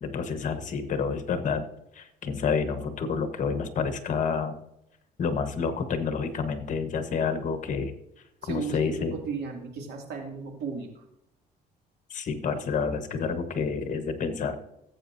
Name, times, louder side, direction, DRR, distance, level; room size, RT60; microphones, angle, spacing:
voice 1, 0.0-1.7 1.9-4.5 5.2-7.9 8.5-9.2 12.1-14.6, left 5 dB, 50° left, 9 dB, 1.3 m, -29 dB
voice 2, 8.4-11.0, right 5 dB, 75° right, 1 dB, 2.6 m, -35 dB
18.0 x 8.3 x 2.7 m, 0.82 s
cardioid pair, 110°, 17 cm